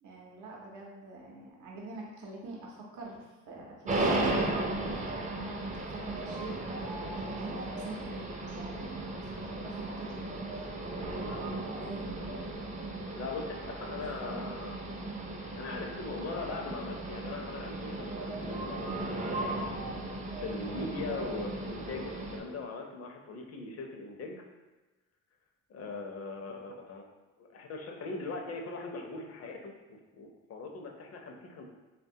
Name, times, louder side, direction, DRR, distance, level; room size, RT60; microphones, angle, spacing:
voice 1, 0.0-3.2 3.5-7.1 7.4-12.4 14.2-14.4, right 2 dB, 80° right, -2 dB, 0.6 m, -45 dB
sound 1, 3.9-22.4, right 2 dB, 25° right, 0.4 m, -36 dB
voice 2, 11.0-11.4 13.2-13.4 13.8-14.8 15.6-19.6 20.3-24.4 25.7-27.0 27.4-31.7, left 3 dB, 55° left, 2 dB, 0.5 m, -40 dB
3.3 x 2.2 x 2.7 m, 1.2 s
cardioid pair, 90°, 30 cm